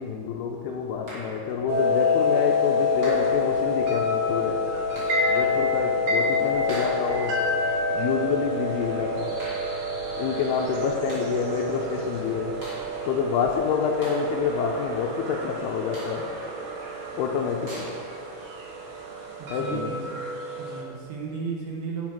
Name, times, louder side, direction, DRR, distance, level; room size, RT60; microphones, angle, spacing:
voice 1, 0.0-4.8 5.3-7.6 7.9-9.4 10.2-12.6 13.0-16.4 17.1-18.0 19.5-20.0, left 6 dB, 80° left, 2 dB, 2.4 m, -27 dB
sound 1, 1.1-1.6 3.0-3.7 5.0-5.4 6.7-7.4 9.4-10.0 10.9-11.5 12.6-13.2 14.0-14.7 15.9-16.5 17.7-18.2, right 1 dB, 25° right, 3.0 m, -40 dB
sound 2, 1.7-20.8, left 3 dB, 55° right, 2.5 m, -28 dB
sound 3, 2.7-12.8, equal, 90° right, 1.1 m, -46 dB
voice 2, 19.4-20.0 20.6-22.1, right 5 dB, 70° right, -2 dB, 2.4 m, -34 dB
9.2 x 9.2 x 6.0 m, 2.5 s
omnidirectional pair, 5.2 m